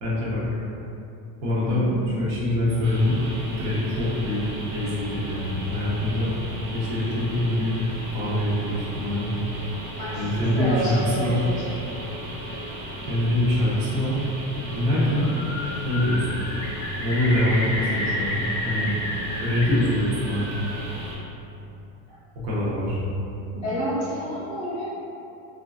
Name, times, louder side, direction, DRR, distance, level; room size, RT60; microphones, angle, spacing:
voice 1, 0.0-0.4 1.4-1.8 2.2-3.2 3.5-4.4 4.7-6.3 6.7-7.7 8.1-9.3 10.1-11.5 13.1-14.3 14.7-15.3 15.8-16.4 17.0-19.0 19.3-20.4 22.4-23.0, left 1 dB, 35° right, -7 dB, 0.8 m, -24 dB
voice 2, 1.7-2.0 10.0-11.7 15.1-15.2 22.1-22.2 23.5-24.9, equal, 15° left, -15 dB, 0.5 m, -29 dB
sound 1, 2.8-21.2, right 1 dB, 70° right, 1.1 m, -36 dB
Bird, 15.1-15.7 15.9-19.6 20.0-20.8, left 1 dB, 55° left, 0.7 m, -31 dB
3.8 x 2.4 x 2.4 m, 2.8 s
supercardioid pair, 160°, 47 cm